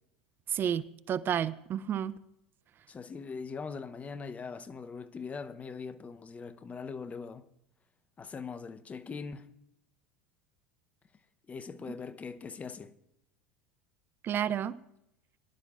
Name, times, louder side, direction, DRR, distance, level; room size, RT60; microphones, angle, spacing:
voice 1, 0.5-2.2 14.2-14.8, right 9 dB, 35° right, 0.5 m, -31 dB
voice 2, 2.9-7.4 8.2-9.5 11.5-12.9, left 5 dB, 25° left, 0.8 m, -41 dB
23.5 x 11.5 x 2.5 m
hypercardioid pair, 80°, 6 cm